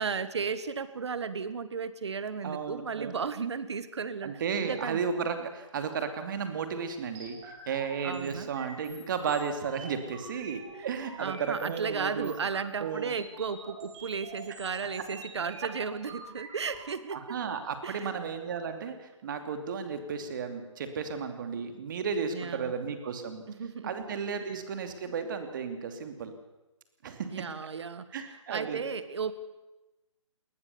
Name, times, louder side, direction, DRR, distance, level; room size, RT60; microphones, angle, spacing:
voice 1, 0.0-4.3 4.6-5.0 8.0-8.5 11.2-17.4 17.8-18.1 22.3-22.7 23.6-23.9 27.3-28.1 28.5-29.3, right 5 dB, 60° right, 14 dB, 1.7 m, -34 dB
voice 2, 2.4-3.1 4.2-12.3 12.8-13.2 17.1-23.4 23.8-26.3 27.0-27.5 28.1-28.8, right 6 dB, 40° right, 7 dB, 2.8 m, -34 dB
sound 1, 7.1-16.8, right 3 dB, 20° right, 5.4 m, -47 dB
21.0 x 20.0 x 7.1 m, 1.0 s
figure-of-eight pair, 150°, 16 cm